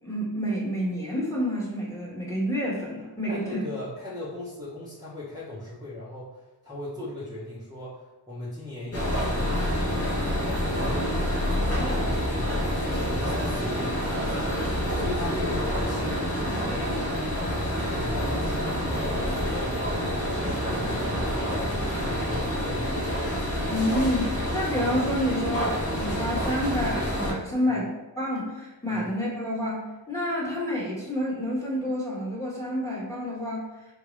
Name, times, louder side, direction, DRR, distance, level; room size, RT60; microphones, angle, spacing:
voice 1, 0.0-3.6 23.7-33.7, equal, 5° left, -6 dB, 1.3 m, -29 dB
voice 2, 3.3-10.0 10.4-11.2 11.5-16.8 17.9-19.9 20.2-23.0 28.9-29.0, left 1 dB, 10° right, -11 dB, 0.9 m, -38 dB
sound 1, 8.9-27.3, equal, 35° left, 0.8 m, -27 dB
3.6 x 2.2 x 3.1 m, 1.0 s
cardioid pair, 45°, 42 cm